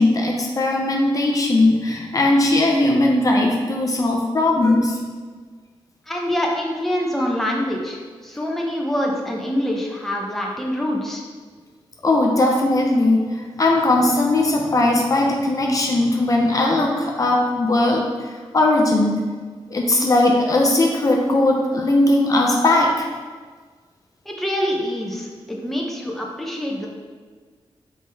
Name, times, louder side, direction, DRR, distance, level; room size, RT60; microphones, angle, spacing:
voice 1, 0.0-5.0 12.0-18.1 18.5-19.2 19.7-23.1, left 2 dB, 35° left, 0 dB, 0.6 m, -18 dB
voice 2, 6.1-11.2 24.3-26.9, equal, 5° left, -2 dB, 0.7 m, -25 dB
6.3 x 4.6 x 3.4 m, 1.5 s
wide cardioid pair, 170°, 10 cm